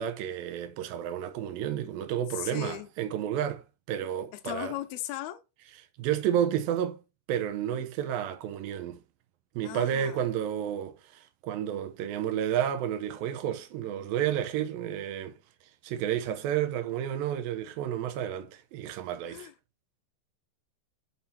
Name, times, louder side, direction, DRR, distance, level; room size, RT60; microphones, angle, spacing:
voice 1, 0.0-4.7 6.0-7.0 7.3-9.0 9.6-15.3 15.8-19.5, right 10 dB, 85° right, 2.0 m, -31 dB
voice 2, 2.3-2.9 4.3-5.4 9.6-10.2 19.3-19.5, left 14 dB, 75° left, 2.3 m, -37 dB
6.0 x 5.6 x 4.2 m
omnidirectional pair, 5.2 m